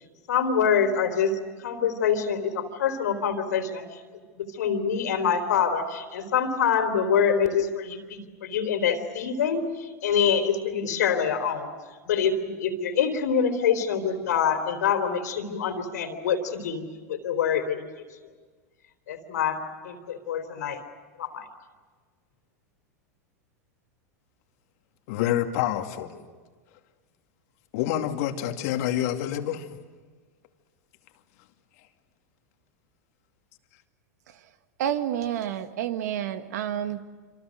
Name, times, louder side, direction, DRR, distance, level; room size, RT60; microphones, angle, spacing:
voice 1, 0.3-3.8 4.4-11.7 12.1-16.8 17.1-17.8 19.1-20.8 21.2-21.5, left 7 dB, 80° left, 7 dB, 3.7 m, -25 dB
voice 2, 25.1-26.2 27.7-29.7, left 11 dB, 60° left, 5 dB, 2.4 m, -27 dB
voice 3, 34.8-37.0, right 10 dB, 75° right, 9 dB, 1.8 m, -29 dB
27.0 x 26.5 x 6.5 m, 1.5 s
hypercardioid pair, 105°, 9 cm